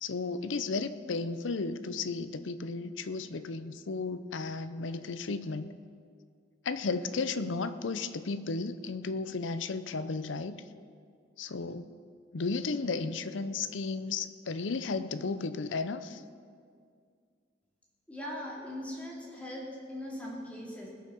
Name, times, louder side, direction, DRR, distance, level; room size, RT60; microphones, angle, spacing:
voice 1, 0.0-5.7 6.6-10.5 11.4-11.9 12.3-16.2, left 4 dB, 90° left, 12 dB, 0.6 m, -34 dB
voice 2, 18.1-20.9, left 1 dB, 5° left, -4 dB, 2.7 m, -40 dB
20.5 x 6.9 x 6.2 m, 2.2 s
head